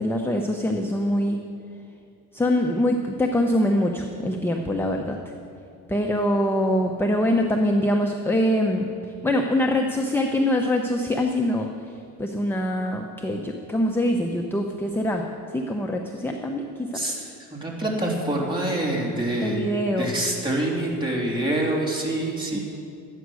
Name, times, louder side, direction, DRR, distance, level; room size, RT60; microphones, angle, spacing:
voice 1, 0.0-1.4 2.3-5.2 5.9-8.9 9.2-15.3 15.5-17.0 19.4-20.2 22.5-22.6, left 1 dB, 5° left, 2 dB, 0.8 m, -24 dB
voice 2, 16.9-19.7 20.0-22.6, right 1 dB, 15° right, -4 dB, 3.2 m, -26 dB
13.0 x 9.3 x 6.3 m, 2.5 s
cardioid pair, 100°, 36 cm